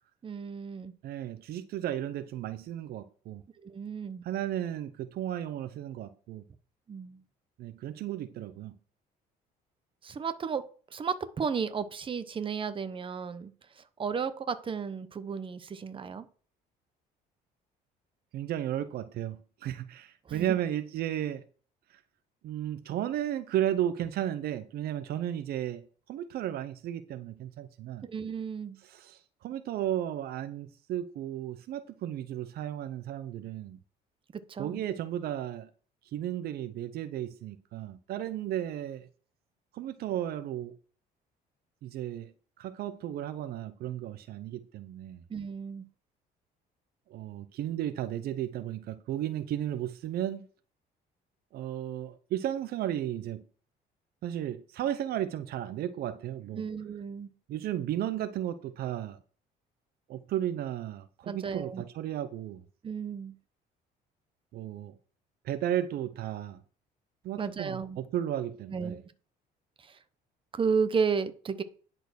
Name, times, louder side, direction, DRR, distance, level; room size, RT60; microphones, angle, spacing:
voice 1, 0.2-0.9 3.6-4.3 6.9-7.2 10.0-10.6 10.9-13.5 13.8-16.3 20.3-20.6 28.0-28.8 34.3-34.8 45.3-45.9 56.5-57.3 61.2-61.8 62.8-63.3 67.4-68.0 68.7-69.0 69.8-70.0 70.5-71.6, right 6 dB, 30° right, 0.9 m, -33 dB
voice 2, 1.0-3.4 4.2-6.4 7.6-8.8 18.3-21.4 22.4-28.0 28.8-33.8 34.6-35.7 36.1-39.1 39.7-40.7 41.8-42.3 42.6-45.2 47.1-50.4 51.5-53.4 54.2-56.6 57.5-59.2 60.1-62.6 64.5-64.9 65.4-66.6 67.2-69.0, right 11 dB, 70° right, 0.6 m, -34 dB
10.5 x 4.5 x 6.3 m
cardioid pair, 110°, 17 cm